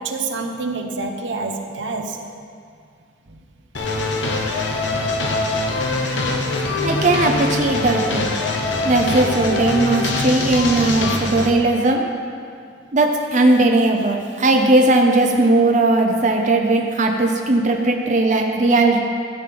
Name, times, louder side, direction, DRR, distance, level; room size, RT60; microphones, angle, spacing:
voice 1, 0.0-2.2, right 3 dB, 75° right, 4 dB, 0.8 m, -27 dB
sound 1, 3.7-11.5, left 2 dB, 75° left, 1.0 m, -23 dB
voice 2, 6.8-8.3 8.8-12.1 12.9-19.0, right 2 dB, 40° right, 2 dB, 0.7 m, -17 dB
14.0 x 8.5 x 3.4 m, 2.3 s
head